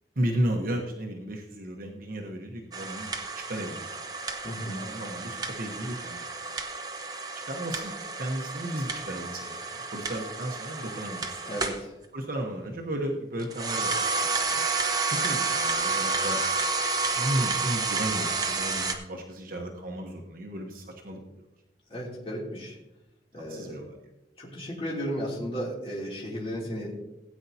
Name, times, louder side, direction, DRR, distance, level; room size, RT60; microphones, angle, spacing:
voice 1, 0.2-3.1 3.4-4.0 4.6-6.5 7.5-7.9 8.2-11.4 12.1-14.6 15.1-16.4 17.1-21.4 23.3-24.0, right 1 dB, 50° right, 1 dB, 1.1 m, -34 dB
sound 1, 2.7-11.8 13.4-19.0, right 3 dB, 20° right, 0.9 m, -30 dB
voice 2, 4.4-4.8 11.4-11.9 21.9-22.8 23.3-23.8 24.4-26.9, equal, 35° left, -6 dB, 2.9 m, -34 dB
16.5 x 9.1 x 2.8 m, 0.96 s
head